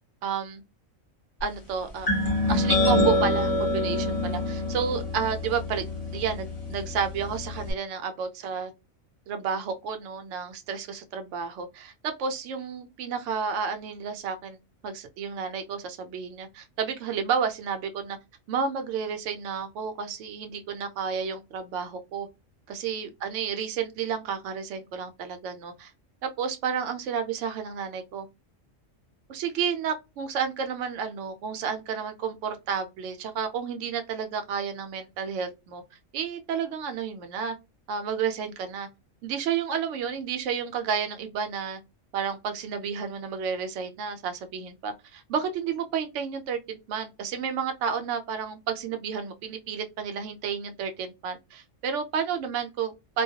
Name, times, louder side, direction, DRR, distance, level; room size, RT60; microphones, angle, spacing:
voice 1, 0.2-0.6 1.4-2.1 2.5-5.8 6.1-8.7 9.3-14.6 14.8-18.2 18.5-22.3 22.7-25.9 26.2-28.3 29.3-35.8 36.1-37.6 37.9-38.9 39.2-41.8 42.1-53.2, right 6 dB, 70° right, 0.9 m, -31 dB
sound 1, 2.1-7.7, left 2 dB, 35° left, 0.7 m, -26 dB
2.2 x 2.2 x 2.7 m
omnidirectional pair, 1.4 m